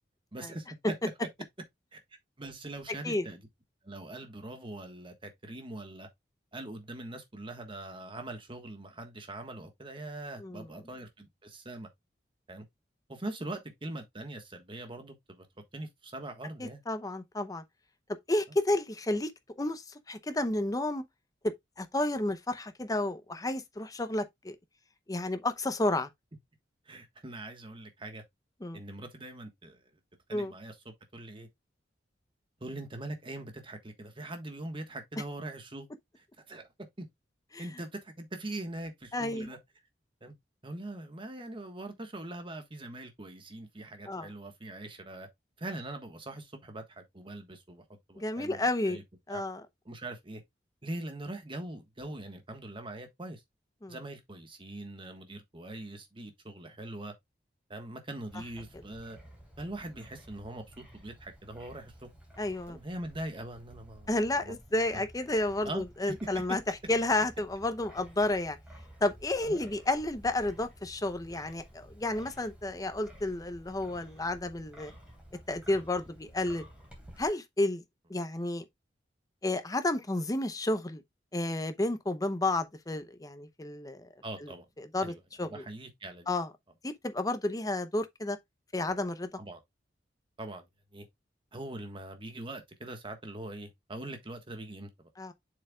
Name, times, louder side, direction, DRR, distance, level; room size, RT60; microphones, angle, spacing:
voice 1, 0.3-0.9 1.9-2.0 2.4-3.4 3.8-6.1 6.5-11.9 12.5-12.6 13.1-15.5 15.7-16.8 26.9-28.2 28.7-29.8 30.3-30.7 31.1-31.5 32.6-35.9 36.2-36.7 37.0-37.1 37.6-39.6 40.2-40.3 40.6-45.3 45.6-47.8 48.1-49.0 49.3-49.4 49.8-50.4 50.8-53.4 53.9-57.1 57.7-59.2 59.6-62.1 62.7-64.5 64.9-65.0 65.6-66.1 69.4-69.6 84.2-84.6 85.0-86.3 89.4-89.6 90.4-90.6 90.9-91.1 91.5-95.1, right 1 dB, 30° right, 1.4 m, -42 dB
voice 2, 16.6-17.6 18.3-19.3 19.6-21.0 21.4-24.6 25.1-26.1 28.6-28.8 30.3-30.5 37.5-37.6 39.1-39.5 44.1-44.3 48.2-49.0 49.3-49.6 53.8-54.0 62.4-62.8 64.1-66.6 66.9-68.6 69.0-74.9 75.5-76.6 77.2-77.8 78.1-78.6 79.4-81.0 81.3-84.1 84.4-84.5 84.8-85.6 86.3-86.5 86.8-88.4 88.7-89.3 95.2-95.3, left 2 dB, 20° left, 0.7 m, -31 dB
Wind, 58.3-77.3, equal, 5° right, 3.2 m, -53 dB
7.3 x 6.6 x 2.3 m
head